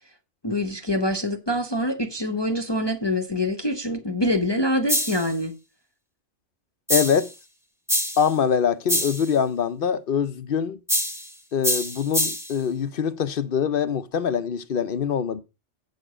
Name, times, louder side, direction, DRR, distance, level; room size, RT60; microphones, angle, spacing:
voice 1, 0.4-5.6, left 1 dB, 25° left, 0.9 m, -25 dB
sound 1, 4.9-5.3 6.9-7.3 7.9-8.3 8.9-9.3 10.9-11.3 11.6-12.6, equal, ahead, 1.1 m, -25 dB
voice 2, 6.9-7.3 8.2-10.8 11.5-15.4, left 7 dB, 55° left, 0.8 m, -24 dB
8.5 x 6.6 x 4.9 m
omnidirectional pair, 1.2 m